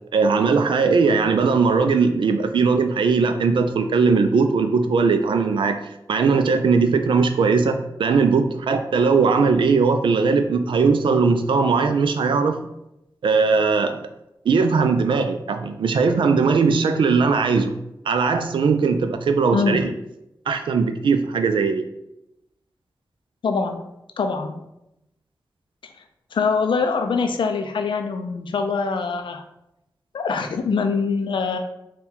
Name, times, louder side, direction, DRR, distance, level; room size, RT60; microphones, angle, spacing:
voice 1, 0.1-5.8 6.1-12.7 13.2-14.0 14.5-17.7 18.1-19.9 20.5-21.9, right 4 dB, 90° right, 7 dB, 0.4 m, -19 dB
voice 2, 23.4-23.9 24.2-24.6 26.3-29.4 30.1-31.6, left 5 dB, 85° left, 6 dB, 0.4 m, -23 dB
4.3 x 2.2 x 3.7 m, 0.86 s
cardioid pair, 50°, 8 cm